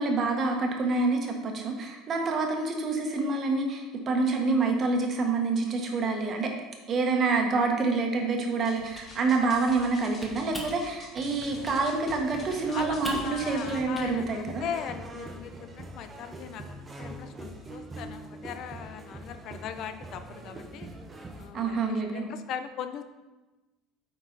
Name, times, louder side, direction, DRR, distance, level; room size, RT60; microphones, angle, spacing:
voice 1, 0.0-6.5 6.9-14.6 21.5-22.2, right 3 dB, 35° right, 2 dB, 1.3 m, -27 dB
sound 1, 8.6-13.8, left 2 dB, 30° left, 1.7 m, -49 dB
Typing, 8.8-9.9 10.2-10.8 11.2-11.8 12.1-14.1, equal, 5° left, 1.3 m, -42 dB
sound 2, 11.2-21.5, right 1 dB, 20° right, 0.9 m, -43 dB
voice 2, 12.7-16.6 17.0-20.9 21.4-23.0, left 8 dB, 55° left, 9 dB, 0.5 m, -39 dB
8.7 x 4.5 x 4.0 m, 1.1 s
cardioid pair, 130°, 0 cm